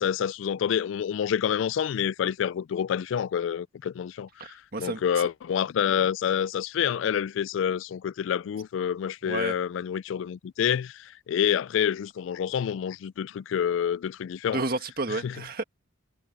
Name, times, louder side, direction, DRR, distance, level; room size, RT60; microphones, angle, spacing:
voice 1, 0.0-14.6 15.1-15.3, left 8 dB, 75° left, 0.3 m, -28 dB
voice 2, 4.4-5.0 9.2-9.5 14.5-15.6, right 2 dB, 50° right, 1.8 m, -31 dB
head